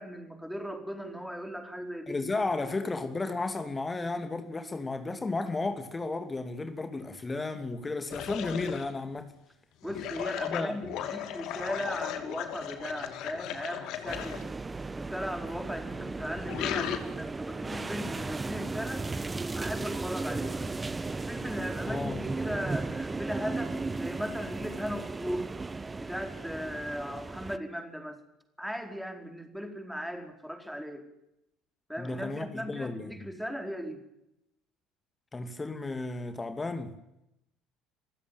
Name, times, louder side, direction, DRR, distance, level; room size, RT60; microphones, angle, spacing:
voice 1, 0.0-2.2 9.8-14.5 15.0-19.1 19.5-20.6 21.1-25.5 26.0-28.2 28.6-31.1 31.9-34.0, equal, ahead, 4.6 m, -37 dB
voice 2, 2.1-9.3 10.4-10.8 21.9-22.2 32.0-33.1 35.3-36.9, left 3 dB, 20° left, 2.8 m, -33 dB
sound 1, 8.1-8.9 9.8-14.4 15.8-17.0, left 10 dB, 55° left, 2.7 m, -36 dB
sound 2, 14.1-27.6, right 3 dB, 20° right, 1.1 m, -35 dB
27.5 x 15.5 x 9.3 m
figure-of-eight pair, 60°, 0 cm